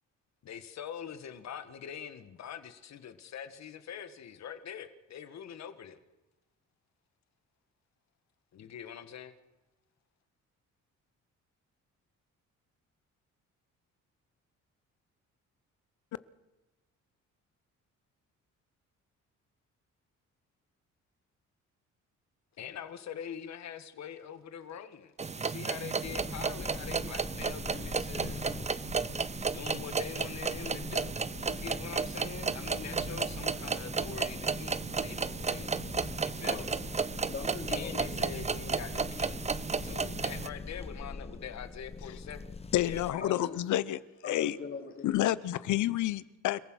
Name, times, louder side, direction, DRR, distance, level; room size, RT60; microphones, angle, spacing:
voice 1, 0.4-6.0 8.5-9.3 22.6-28.5 29.4-35.7 36.2-36.7 37.7-39.5 39.8-42.5 42.8-43.6, left 8 dB, 60° left, 1.7 m, -44 dB
sound 1, 25.2-40.5, right 5 dB, 20° right, 0.7 m, -33 dB
sound 2, 26.0-43.1, left 4 dB, 20° left, 1.1 m, -43 dB
voice 2, 36.2-36.7 37.2-38.1 43.2-43.6 44.2-45.1, left 5 dB, 45° left, 4.0 m, -41 dB
voice 3, 42.7-44.0 44.2-44.5 45.0-46.6, left 14 dB, 75° left, 0.9 m, -29 dB
29.0 x 15.0 x 6.3 m
cardioid pair, 90°, 30 cm